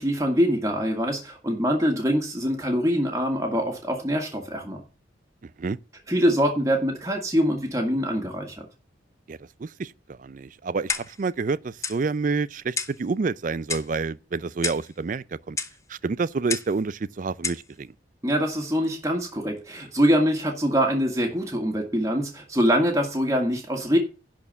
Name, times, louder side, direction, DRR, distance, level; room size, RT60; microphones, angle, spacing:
voice 1, 0.0-4.8 6.1-8.7 18.2-24.0, equal, 15° right, 1.8 m, -24 dB
voice 2, 5.4-5.8 9.3-15.6 15.9-17.9, right 4 dB, 45° right, 0.4 m, -29 dB
Clock, 10.9-11.3 11.8-12.0 12.8-13.0 13.7-14.0 14.6-14.9 15.6-15.8 16.5-16.8 17.4-17.7, left 5 dB, 15° left, 0.7 m, -30 dB
11.0 x 4.5 x 7.0 m
head